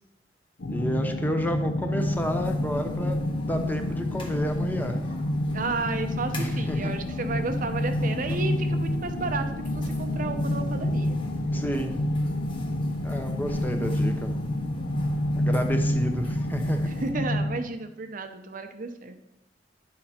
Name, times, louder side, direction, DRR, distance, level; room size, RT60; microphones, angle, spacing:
sound 1, 0.6-17.6, left 1 dB, 75° left, 0.8 m, -28 dB
voice 1, 0.7-3.2 3.5-5.0 6.4-6.9 11.5-11.9 13.0-14.3 15.4-16.8, equal, 10° left, 5 dB, 0.8 m, -30 dB
sound 2, 2.0-17.1, left 1 dB, 30° left, 1.3 m, -44 dB
voice 2, 5.5-11.2 17.0-19.2, right 3 dB, 50° right, 7 dB, 0.7 m, -32 dB
10.5 x 6.6 x 4.3 m, 0.87 s
head